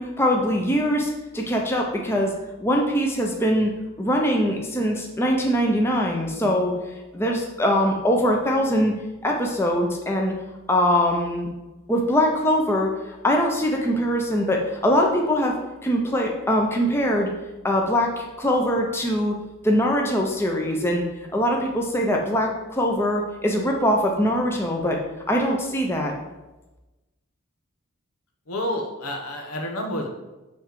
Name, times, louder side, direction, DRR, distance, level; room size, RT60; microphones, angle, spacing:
voice 1, 0.0-2.3 2.6-3.7 4.0-6.7 7.1-8.9 9.2-10.3 10.7-11.5 11.9-15.5 15.8-17.3 17.6-19.3 19.6-21.0 21.3-25.0 25.3-26.1, equal, 10° left, 0 dB, 0.6 m, -22 dB
voice 2, 28.5-30.1, left 1 dB, 90° left, 2 dB, 1.0 m, -29 dB
7.0 x 3.3 x 4.6 m, 1.1 s
head